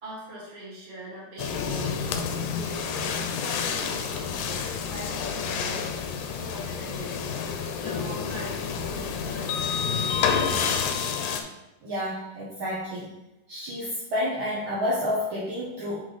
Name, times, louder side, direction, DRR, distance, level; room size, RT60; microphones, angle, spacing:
voice 1, 0.0-5.9 6.2-7.2 7.8-10.8, right 1 dB, 25° right, -6 dB, 1.4 m, -41 dB
sound 1, 1.4-11.4, left 6 dB, 80° left, 2.2 m, -29 dB
voice 2, 11.8-13.1 13.5-16.1, left 1 dB, 70° right, -7 dB, 1.1 m, -30 dB
5.7 x 4.2 x 4.9 m, 1.0 s
omnidirectional pair, 3.9 m